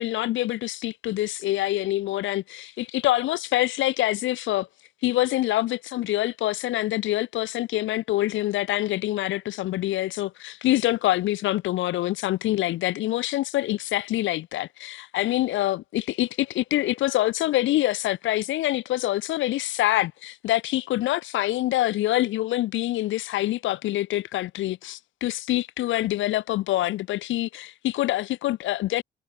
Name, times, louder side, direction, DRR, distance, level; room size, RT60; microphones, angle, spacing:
voice 1, 0.0-4.7 5.0-29.0, left 15 dB, 75° left, 0.6 m, -25 dB
cardioid pair, 90°, 20 cm